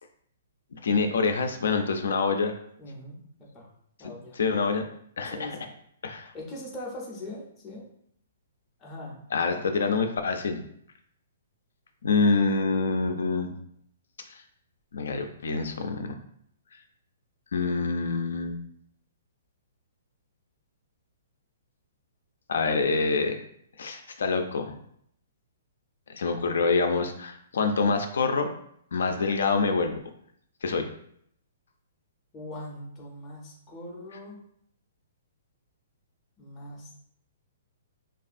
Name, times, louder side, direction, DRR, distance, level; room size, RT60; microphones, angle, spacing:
voice 1, 0.7-2.5 4.3-4.8 5.2-5.6 6.0-6.3 9.3-10.6 12.0-13.5 14.9-16.2 17.5-18.6 22.5-23.4 23.8-24.8 26.1-28.5 28.9-30.0 30.6-30.9, left 4 dB, 75° left, 6 dB, 0.3 m, -26 dB
voice 2, 2.8-3.7 4.0-4.4 5.3-5.7 6.3-7.8 8.8-9.2 32.3-34.4 36.4-37.0, left 1 dB, 10° left, -3 dB, 0.5 m, -41 dB
3.3 x 2.3 x 2.4 m, 0.68 s
hypercardioid pair, 180°, 0 cm